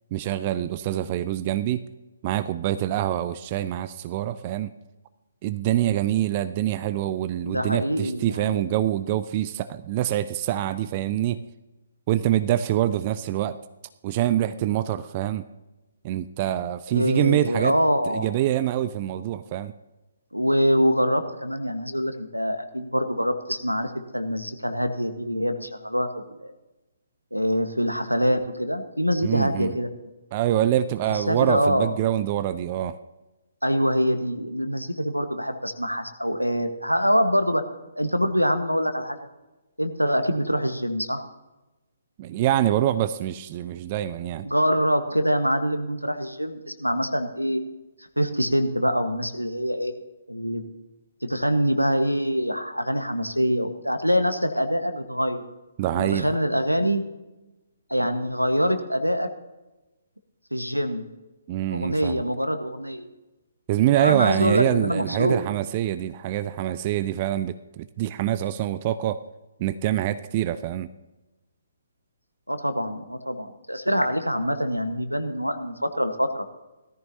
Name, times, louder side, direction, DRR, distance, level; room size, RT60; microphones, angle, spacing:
voice 1, 0.1-1.8 2.2-4.7 5.4-11.4 12.1-13.6 14.0-15.4 16.0-17.8 18.1-19.7 29.2-29.7 30.3-33.0 42.2-44.5 55.8-56.4 61.5-62.2 63.7-69.2 69.6-70.9, right 12 dB, 30° right, 13 dB, 0.4 m, -25 dB
voice 2, 7.4-8.6 16.9-18.3 20.3-26.5 27.3-29.9 31.0-31.9 33.6-37.6 38.0-39.2 39.8-41.2 44.4-47.6 48.2-49.9 50.3-50.6 51.2-55.4 55.9-57.0 57.9-59.3 60.5-61.0 61.7-63.1 64.0-65.4 72.5-76.4, equal, 90° right, 8 dB, 1.3 m, -24 dB
17.5 x 14.0 x 2.8 m, 1.1 s
figure-of-eight pair, 135°, 0 cm